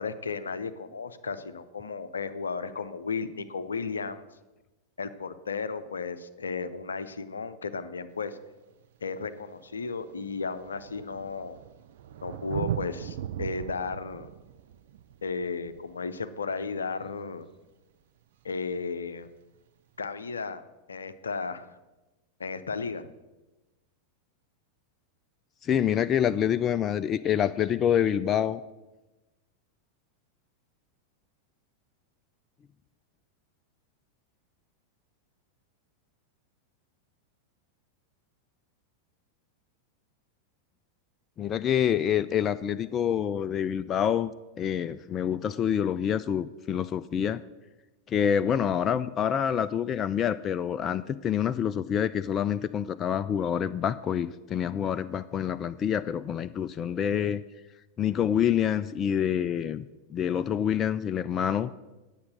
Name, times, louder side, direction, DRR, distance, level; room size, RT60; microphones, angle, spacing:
voice 1, 0.0-4.3 5.0-8.4 9.0-11.6 12.2-14.3 15.2-17.5 18.4-19.3 20.0-20.6 20.9-21.8 22.4-23.1, left 4 dB, 70° left, 12 dB, 0.6 m, -34 dB
Thunder, 8.2-8.3 9.2-9.3 9.5-16.9 18.5-18.6, right 10 dB, 55° right, 0.5 m, -39 dB
voice 2, 25.6-28.6 41.4-44.3 44.6-47.4 48.1-57.4 58.0-59.9 60.1-61.7, left 9 dB, 25° left, 14 dB, 0.3 m, -27 dB
9.4 x 7.1 x 6.3 m, 1.1 s
figure-of-eight pair, 90°, 0 cm